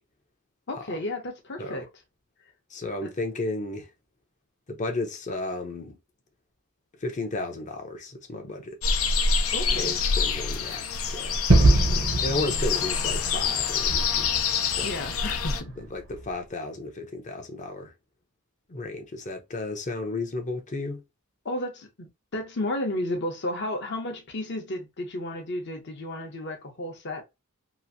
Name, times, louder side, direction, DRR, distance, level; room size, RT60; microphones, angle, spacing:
voice 1, 0.7-1.9 3.0-3.1 9.5-9.9 14.8-15.7 21.4-22.1 22.3-27.2, left 1 dB, 55° left, 0.9 m, -32 dB
voice 2, 2.7-3.9 4.7-6.0 7.0-8.8 9.7-11.5 12.2-14.3 14.7-15.0 15.8-17.9 18.7-21.0, left 2 dB, 35° left, 0.7 m, -33 dB
sound 1, 8.8-15.6, left 5 dB, 75° left, 0.5 m, -26 dB
Gunshot gunfire / Fireworks / Boom, 11.5-16.3, right 2 dB, 60° right, 0.7 m, -25 dB
3.0 x 2.6 x 2.6 m
head